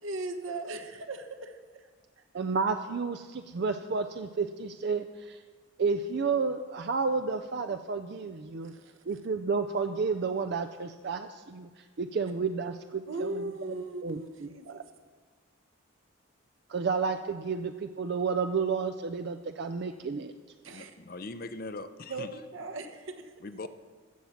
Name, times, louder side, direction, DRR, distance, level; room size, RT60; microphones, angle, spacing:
voice 1, 0.0-1.9 8.6-9.0 13.1-14.8 20.6-20.9 22.1-23.3, right 2 dB, 70° right, 1.1 m, -38 dB
voice 2, 2.3-5.4 5.8-8.7 9.1-13.8 14.0-14.8 16.7-20.3, right 5 dB, 50° right, 0.4 m, -31 dB
voice 3, 20.6-22.4 23.4-23.7, left 3 dB, 45° left, 0.5 m, -41 dB
14.5 x 7.4 x 5.8 m
head